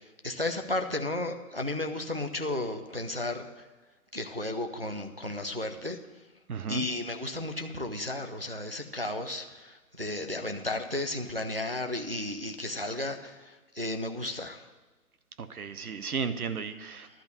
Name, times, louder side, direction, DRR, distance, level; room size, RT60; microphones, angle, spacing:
voice 1, 0.2-3.7 4.1-6.0 6.7-14.6, left 2 dB, 40° right, 5 dB, 0.4 m, -33 dB
voice 2, 6.5-6.9 15.4-17.1, right 6 dB, 70° right, 11 dB, 0.9 m, -34 dB
14.5 x 11.5 x 2.7 m, 1.2 s
hypercardioid pair, 180°, 45 cm